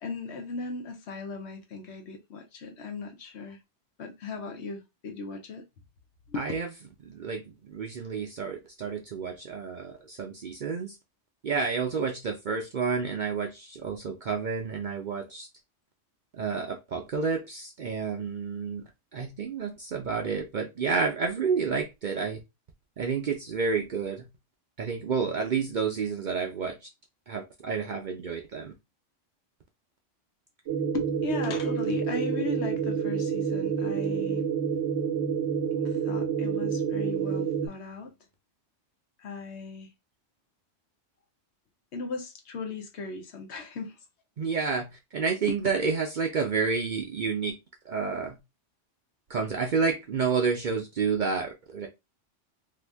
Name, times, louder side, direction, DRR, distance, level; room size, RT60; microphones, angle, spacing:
voice 1, 0.0-3.6 4.0-5.6 6.3-6.4 30.9-34.4 35.8-38.1 39.2-39.9 41.9-44.0 45.5-45.6, left 4 dB, 65° left, 1.0 m, -37 dB
voice 2, 6.4-6.7 7.0-11.0 11.4-15.5 16.3-18.8 19.1-22.4 23.0-24.3 24.8-26.9 27.3-28.7 44.4-44.9 45.1-47.6 47.9-48.4 49.3-51.9, right 5 dB, 55° right, 0.5 m, -30 dB
sound 1, 30.7-37.7, right 7 dB, 80° right, 1.0 m, -28 dB
2.8 x 2.5 x 3.4 m
omnidirectional pair, 1.3 m